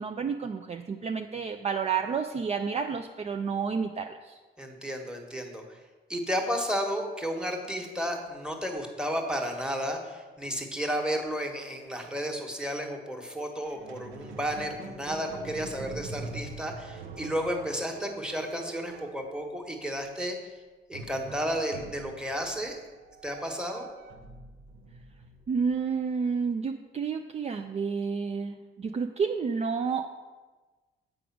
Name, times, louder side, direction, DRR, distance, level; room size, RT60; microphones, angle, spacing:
voice 1, 0.0-4.4 25.5-30.1, right 5 dB, 35° right, 5 dB, 0.5 m, -30 dB
voice 2, 4.6-5.8 6.1-20.4 20.9-22.8 23.2-23.9, equal, 5° right, 2 dB, 1.3 m, -32 dB
Squeak, 13.6-20.0 20.9-26.1, right 3 dB, 80° right, 1.0 m, -44 dB
7.7 x 5.1 x 5.9 m, 1.3 s
cardioid pair, 90°, 20 cm